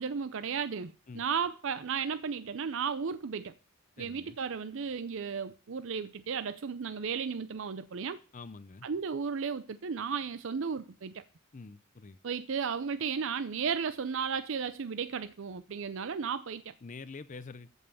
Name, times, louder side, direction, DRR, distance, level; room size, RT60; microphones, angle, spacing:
voice 1, 0.0-3.5 4.0-8.2 8.8-11.2 12.2-16.7, right 6 dB, 60° right, 0.5 m, -34 dB
voice 2, 4.0-4.4 8.3-8.9 11.5-12.2 16.8-17.7, left 4 dB, 35° left, 0.5 m, -46 dB
14.5 x 5.5 x 6.9 m
head